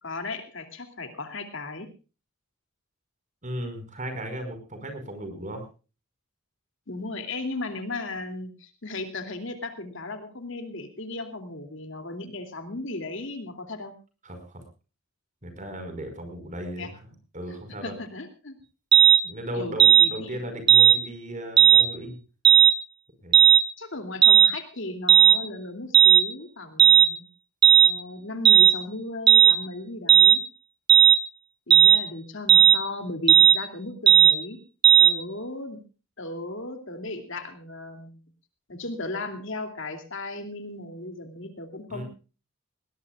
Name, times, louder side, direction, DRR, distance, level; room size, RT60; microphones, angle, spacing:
voice 1, 0.0-1.9 6.9-13.9 16.8-16.9 17.8-18.6 19.5-20.4 23.8-27.2 27.8-30.4 31.7-34.6 35.0-35.8 36.2-38.2 38.7-42.0, left 2 dB, 60° left, 6 dB, 2.7 m, -36 dB
voice 2, 3.4-5.6 14.2-14.6 15.4-16.9 17.3-17.9 19.2-22.2 23.2-23.4 41.9-42.0, equal, 35° right, 7 dB, 5.1 m, -36 dB
sound 1, 18.9-19.2 19.8-20.1 20.7-21.0 21.6-21.9 22.4-22.7 23.3-23.6 24.2-24.5 25.1-25.4 25.9-26.2 26.8-27.1 27.6-27.9 28.5-28.7 29.3-29.6 30.1-30.4 30.9-31.2 31.7-32.0 32.5-32.8 33.3-33.6 34.1-34.3 34.8-35.1, right 9 dB, 20° right, 0.8 m, -14 dB
20.0 x 18.5 x 2.4 m, 0.34 s
head